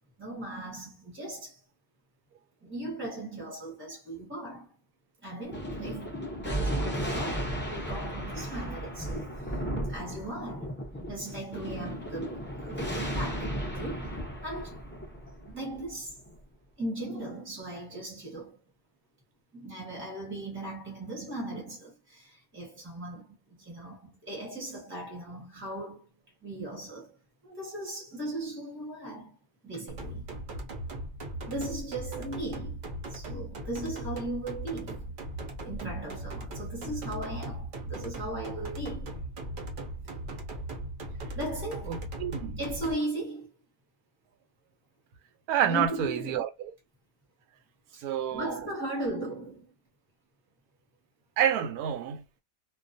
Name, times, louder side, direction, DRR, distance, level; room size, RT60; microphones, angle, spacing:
voice 1, 0.2-1.6 2.6-4.7 5.2-9.5 9.9-10.7 11.1-14.8 15.4-16.2 16.8-18.6 19.5-26.1 26.4-27.2 27.4-29.4 29.6-30.3 31.5-32.8 33.1-35.1 35.6-39.1 41.3-42.0 42.6-43.5 45.7-46.5 47.9-49.7, right 1 dB, 10° right, 0.6 m, -38 dB
Thunder, 5.5-16.4, equal, 20° left, 0.3 m, -35 dB
sound 1, 29.9-42.9, right 1 dB, 55° right, 0.6 m, -38 dB
voice 2, 41.9-42.6 45.5-46.7 48.0-48.7 51.4-52.2, right 9 dB, 90° right, 1.1 m, -29 dB
2.4 x 2.2 x 2.5 m
omnidirectional pair, 1.5 m